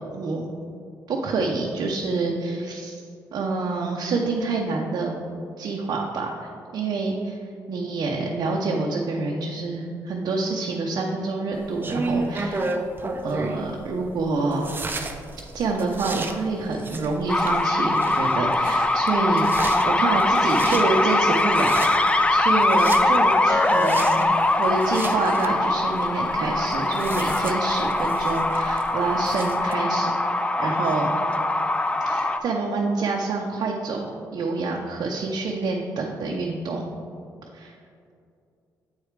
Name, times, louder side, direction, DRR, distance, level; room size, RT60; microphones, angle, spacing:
voice 1, 1.1-3.0 3.3-5.2 5.6-7.4 7.7-12.7 13.2-14.7 15.5-19.5 19.8-24.3 24.6-30.1 30.6-31.1 32.1-34.1 34.3-36.8 37.5-37.7, right 3 dB, 65° right, -1 dB, 0.7 m, -27 dB
sound 1, 11.5-29.7, right 2 dB, 30° right, 0.6 m, -34 dB
sound 2, 17.3-32.4, left 2 dB, 15° left, 0.4 m, -22 dB
8.2 x 4.8 x 3.3 m, 2.5 s
cardioid pair, 70°, 7 cm